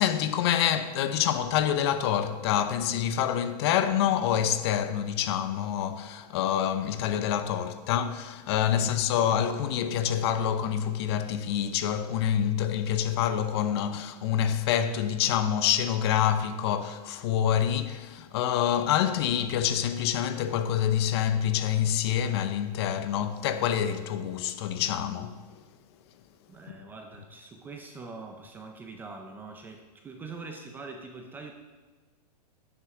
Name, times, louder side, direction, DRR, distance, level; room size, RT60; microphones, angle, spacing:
voice 1, 0.0-25.4, left 9 dB, 40° left, 0.7 m, -27 dB
voice 2, 26.5-31.5, right 3 dB, 10° right, 0.4 m, -43 dB
9.9 x 9.8 x 3.7 m
hypercardioid pair, 155°, 21 cm